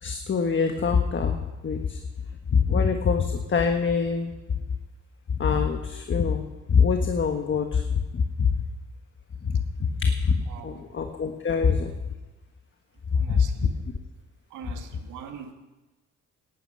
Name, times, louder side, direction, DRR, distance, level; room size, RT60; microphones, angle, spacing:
voice 1, 0.0-2.0 2.5-4.3 5.4-7.8 8.1-8.5 9.4-9.6 10.0-11.9 13.1-13.4, left 5 dB, 40° left, 5 dB, 1.4 m, -24 dB
voice 2, 10.5-10.9 13.1-13.8 14.5-15.5, right 7 dB, 85° right, 6 dB, 1.8 m, -43 dB
17.5 x 12.0 x 5.6 m, 1.1 s
cardioid pair, 90°, 30 cm